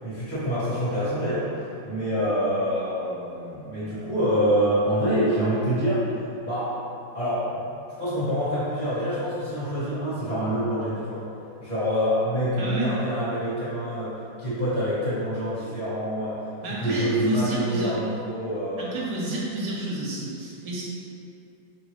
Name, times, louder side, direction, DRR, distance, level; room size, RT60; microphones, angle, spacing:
voice 1, 0.0-6.0 6.4-6.7 7.1-7.7 8.0-11.2 11.6-16.4 16.8-19.0, equal, 30° left, -12 dB, 0.9 m, -26 dB
voice 2, 12.6-12.9 16.6-17.9 18.8-20.8, right 1 dB, 75° right, -4 dB, 1.1 m, -30 dB
4.5 x 3.0 x 3.0 m, 2.8 s
omnidirectional pair, 2.1 m